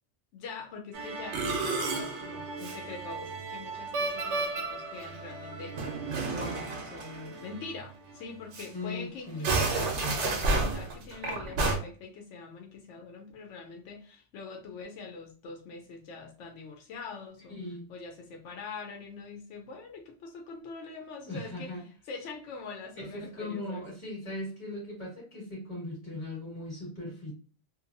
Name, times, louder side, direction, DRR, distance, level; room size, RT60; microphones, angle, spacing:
voice 1, 0.3-6.0 6.3-17.6 17.9-21.8 22.1-23.8, left 4 dB, 90° left, 2 dB, 0.9 m, -44 dB
Musical instrument, 0.9-7.8 8.1-8.2 8.5-8.7 9.3-11.8, right 3 dB, 80° right, 0.9 m, -32 dB
voice 2, 8.7-9.5 17.5-17.8 21.3-21.8 22.9-27.3, left 2 dB, 25° left, -6 dB, 1.6 m, -38 dB
2.8 x 2.2 x 2.5 m, 0.40 s
omnidirectional pair, 1.2 m